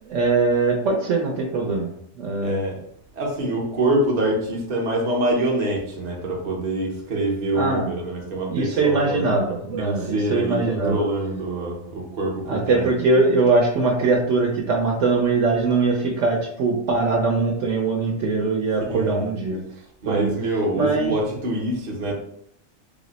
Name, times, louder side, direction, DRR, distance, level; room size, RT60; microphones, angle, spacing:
voice 1, 0.0-1.9 2.2-2.6 7.5-7.9 8.5-11.0 12.5-19.6 20.0-20.3 20.8-21.1, right 3 dB, 65° right, -1 dB, 0.9 m, -21 dB
voice 2, 2.4-2.9 3.1-9.3 9.8-12.9 18.9-19.3 20.0-22.1, right 1 dB, 40° right, -1 dB, 0.7 m, -25 dB
3.4 x 2.0 x 3.9 m, 0.69 s
omnidirectional pair, 1.5 m